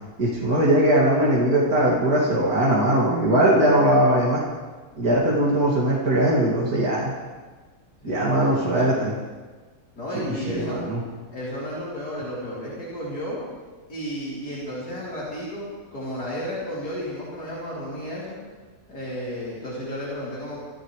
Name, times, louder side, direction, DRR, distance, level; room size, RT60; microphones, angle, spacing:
voice 1, 0.2-4.4 5.0-7.1 8.0-9.1 10.1-11.0, right 1 dB, 65° right, -6 dB, 3.0 m, -20 dB
voice 2, 8.0-9.1 10.0-10.8 11.3-13.4 13.9-18.4 18.9-20.6, equal, 80° left, -8 dB, 4.5 m, -33 dB
27.5 x 14.5 x 3.3 m, 1.4 s
omnidirectional pair, 1.7 m